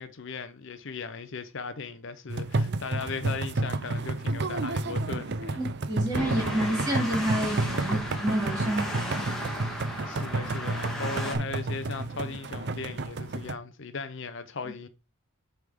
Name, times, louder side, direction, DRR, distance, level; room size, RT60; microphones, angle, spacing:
voice 1, 0.0-5.6 10.1-14.9, left 4 dB, 55° left, 0.7 m, -37 dB
sound 1, 2.3-13.5, right 2 dB, 50° right, 0.5 m, -31 dB
voice 2, 5.6-9.3, right 1 dB, 15° right, 2.7 m, -29 dB
sound 2, 6.1-11.4, left 1 dB, ahead, 1.9 m, -35 dB
Thunder, 6.1-13.0, right 1 dB, 75° right, 1.4 m, -43 dB
8.1 x 3.6 x 5.1 m
head